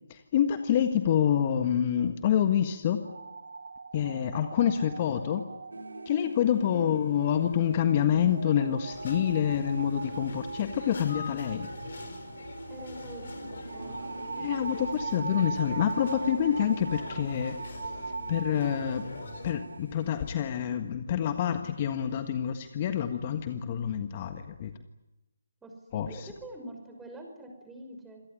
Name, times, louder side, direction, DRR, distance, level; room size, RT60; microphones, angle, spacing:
voice 1, 0.1-3.0 3.9-5.4 6.0-11.7 14.4-17.8 18.3-24.7 25.9-26.3, left 9 dB, 35° left, 8 dB, 1.6 m, -27 dB
sound 1, 3.0-19.8, right 4 dB, 70° right, 1.8 m, -41 dB
sound 2, 5.7-20.4, right 2 dB, 85° right, 4.7 m, -46 dB
voice 2, 6.7-7.0 12.7-14.3 25.6-28.2, right 1 dB, 5° right, 2 dB, 5.8 m, -45 dB
sound 3, 8.9-19.5, left 3 dB, 60° left, 5.4 m, -43 dB
27.5 x 18.0 x 10.0 m, 1.0 s
figure-of-eight pair, 150°, 0 cm